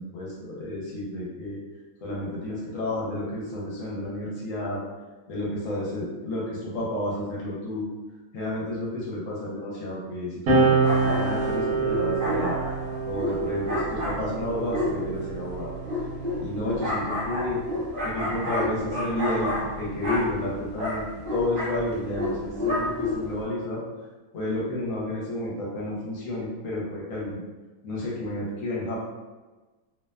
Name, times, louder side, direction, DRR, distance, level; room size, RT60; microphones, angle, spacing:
voice 1, 0.0-1.6 2.0-4.8 5.3-7.9 8.3-12.6 13.0-15.7 16.4-17.6 18.0-21.0 21.3-23.8 24.3-27.4 27.8-29.0, left 1 dB, 65° left, -5 dB, 1.0 m, -31 dB
sound 1, 10.5-17.4 18.4-20.2, right 4 dB, 85° right, 1.2 m, -28 dB
sound 2, 10.8-23.4, left 2 dB, 65° right, 0.5 m, -30 dB
2.7 x 2.1 x 2.2 m, 1.2 s
omnidirectional pair, 1.5 m